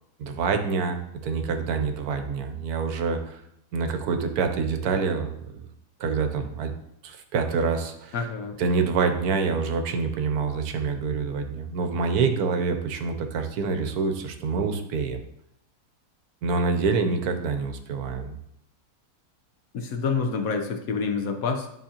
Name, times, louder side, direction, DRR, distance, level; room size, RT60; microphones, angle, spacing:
voice 1, 0.2-3.4 3.7-5.6 6.0-6.7 7.0-8.2 8.6-15.2 16.4-18.4, right 4 dB, 70° right, 6 dB, 1.2 m, -26 dB
voice 2, 8.1-8.6 19.7-21.7, left 5 dB, 65° left, 5 dB, 1.1 m, -27 dB
11.0 x 3.7 x 2.8 m, 0.79 s
omnidirectional pair, 1.7 m